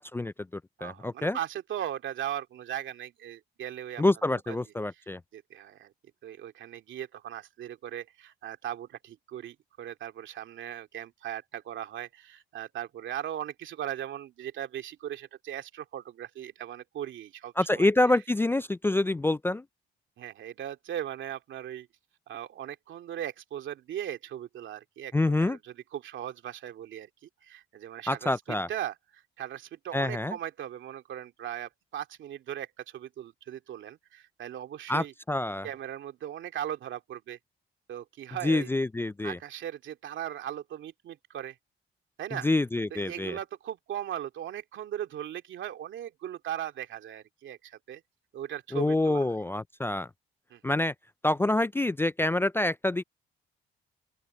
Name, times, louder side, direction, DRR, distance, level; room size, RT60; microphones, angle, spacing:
voice 1, 0.0-1.4 4.0-5.2 17.6-19.6 25.1-25.6 28.1-28.7 29.9-30.4 34.9-35.7 38.4-39.4 42.4-43.4 48.7-50.1 50.6-50.9 51.2-53.0, left 2 dB, 10° left, 0.3 m, -27 dB
voice 2, 0.8-4.0 4.5-4.6 5.3-5.9 6.2-17.9 20.2-21.9 22.3-25.1 25.4-28.3 28.7-35.1 35.6-37.4 37.9-38.7 39.2-41.6 42.2-42.5 42.9-48.0 48.3-49.3 50.5-50.6, right 11 dB, 75° right, 2.6 m, -38 dB
open air
cardioid pair, 90°, 20 cm